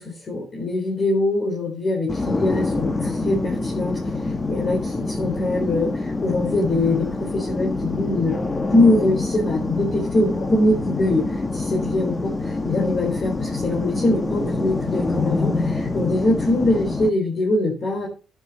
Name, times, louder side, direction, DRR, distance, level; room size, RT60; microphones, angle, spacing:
voice 1, 0.0-8.4 8.7-18.1, left 2 dB, 45° left, -2 dB, 4.1 m, -23 dB
sound 1, 2.1-17.1, left 3 dB, 25° left, 1.3 m, -26 dB
11.0 x 9.6 x 4.1 m, 0.35 s
cardioid pair, 90°, 0 cm